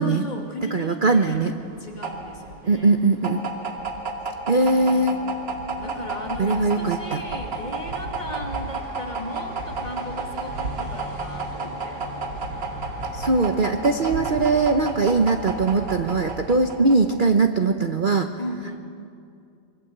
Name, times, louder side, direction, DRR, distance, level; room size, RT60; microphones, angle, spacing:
voice 1, 0.0-1.4 1.8-3.0 4.5-5.5 5.8-12.0 18.4-18.8, left 1 dB, 25° left, 1 dB, 2.7 m, -37 dB
voice 2, 0.7-1.5 2.7-3.4 4.5-5.2 6.4-7.2 13.1-18.3, right 3 dB, 35° right, 7 dB, 0.9 m, -21 dB
sound 1, 1.3-17.3, right 3 dB, 90° right, 3.1 m, -31 dB
26.0 x 23.0 x 8.0 m, 2.4 s
omnidirectional pair, 1.9 m